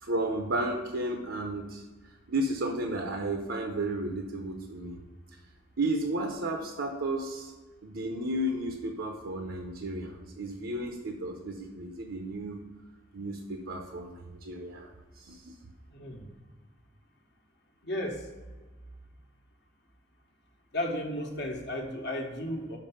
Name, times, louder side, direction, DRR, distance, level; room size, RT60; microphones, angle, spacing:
voice 1, 0.0-5.0 5.8-7.5 7.8-12.6 13.1-14.9 15.2-15.5, right 1 dB, 65° right, 3 dB, 0.7 m, -33 dB
voice 2, 15.9-16.3 17.8-18.2 20.7-22.8, left 1 dB, 55° left, 2 dB, 1.2 m, -34 dB
5.8 x 5.3 x 5.5 m, 1.3 s
head